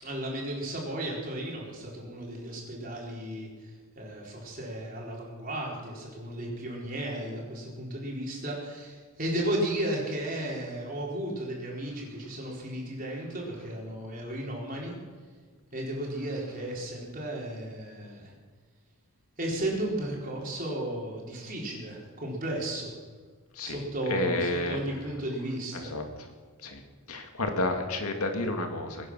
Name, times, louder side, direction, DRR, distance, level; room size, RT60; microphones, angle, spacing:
voice 1, 0.0-3.5 4.0-14.9 15.7-18.3 19.4-22.9 23.6-25.9, right 1 dB, 40° right, -3 dB, 4.2 m, -34 dB
voice 2, 24.1-24.8 25.7-26.0 26.6-26.8 27.1-29.1, left 2 dB, 85° left, 4 dB, 2.3 m, -30 dB
22.5 x 9.9 x 6.3 m, 1.5 s
head